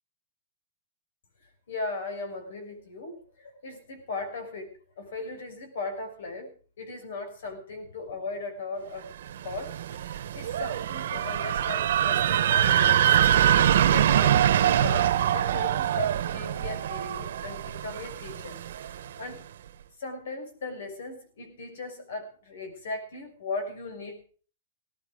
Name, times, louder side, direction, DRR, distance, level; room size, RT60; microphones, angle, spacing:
voice 1, 1.7-9.1 9.4-13.4 13.9-18.6 18.9-19.5 20.0-24.3, left 3 dB, 85° left, 8 dB, 6.0 m, -38 dB
sound 1, 9.3-19.1, right 10 dB, 75° right, 1.2 m, -24 dB
17.5 x 12.5 x 5.1 m, 0.42 s
supercardioid pair, 175°, 0 cm